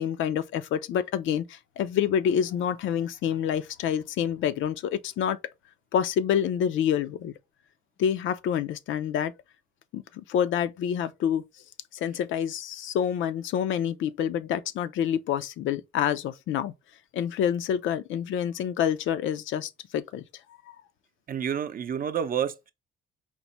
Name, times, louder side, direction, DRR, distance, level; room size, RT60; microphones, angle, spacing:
voice 1, 0.0-5.4 5.9-7.3 8.0-9.3 9.9-11.4 11.9-16.7 17.1-20.2, left 9 dB, 75° left, 0.5 m, -27 dB
voice 2, 21.3-22.7, right 8 dB, 45° right, 0.6 m, -29 dB
4.6 x 2.1 x 4.0 m
cardioid pair, 90°, 20 cm